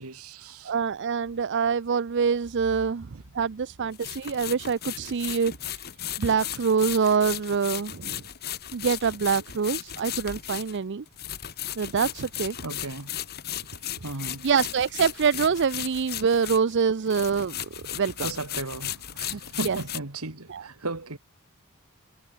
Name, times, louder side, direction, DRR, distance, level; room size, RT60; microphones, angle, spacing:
voice 1, 0.0-0.7 12.6-14.5 18.2-21.2, right 2 dB, 80° right, 2.4 m, -36 dB
voice 2, 0.6-3.1 3.3-5.8 6.2-8.2 8.7-11.0 11.8-12.6 14.4-17.6 17.9-18.3 19.3-19.4 19.6-19.8 20.5-20.6, right 6 dB, 55° right, 0.5 m, -25 dB
sound 1, 2.5-2.6 3.9-16.8 17.1-20.0, left 11 dB, 45° left, 1.3 m, -36 dB
head